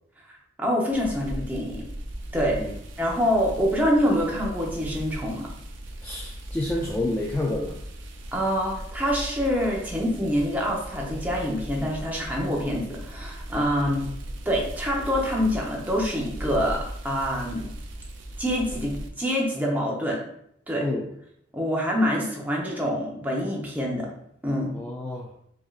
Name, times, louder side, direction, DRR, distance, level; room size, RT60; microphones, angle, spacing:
voice 1, 0.6-1.8 2.3-2.6 3.0-5.5 8.3-14.1 14.5-16.8 17.0-17.7 18.4-20.2 20.7-20.8 21.5-24.1 24.4-24.8, equal, 10° right, -2 dB, 0.7 m, -26 dB
sound 1, 0.9-19.1, right 1 dB, 80° right, 0.5 m, -38 dB
voice 2, 6.0-7.8 20.8-21.1 24.7-25.3, left 1 dB, 10° left, -2 dB, 0.3 m, -29 dB
4.8 x 2.8 x 2.4 m, 0.71 s
head